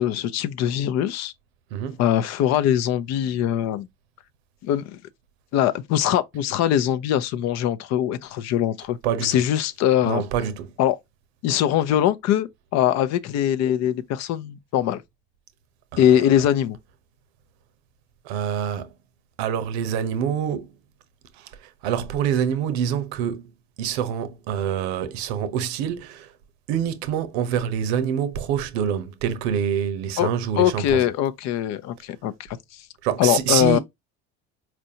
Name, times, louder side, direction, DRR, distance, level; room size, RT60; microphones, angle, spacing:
voice 1, 0.0-1.3 2.0-3.9 4.6-5.0 5.5-10.2 10.8-11.0 11.4-15.0 16.0-16.8 30.2-30.3 30.6-32.8 33.2-33.8, left 11 dB, 55° left, 0.6 m, -22 dB
voice 2, 9.0-9.4 10.0-10.7 15.9-16.4 18.2-18.9 19.4-20.7 21.4-21.5 21.8-23.5 23.8-26.3 26.7-31.1 33.0-33.8, right 9 dB, 85° right, 0.7 m, -26 dB
4.4 x 2.5 x 2.7 m
supercardioid pair, 100°, 31 cm